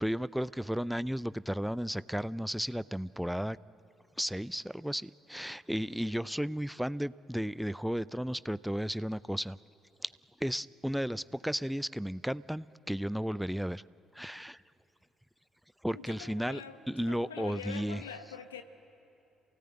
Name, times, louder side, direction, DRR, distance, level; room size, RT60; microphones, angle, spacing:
voice 1, 0.0-3.6 4.2-9.6 10.4-13.8 14.1-14.6 15.8-16.6 16.9-18.0, equal, ahead, 17 dB, 0.5 m, -34 dB
voice 2, 15.9-18.6, left 7 dB, 85° left, 8 dB, 1.0 m, -45 dB
27.5 x 18.0 x 8.9 m, 2.9 s
figure-of-eight pair, 45°, 0 cm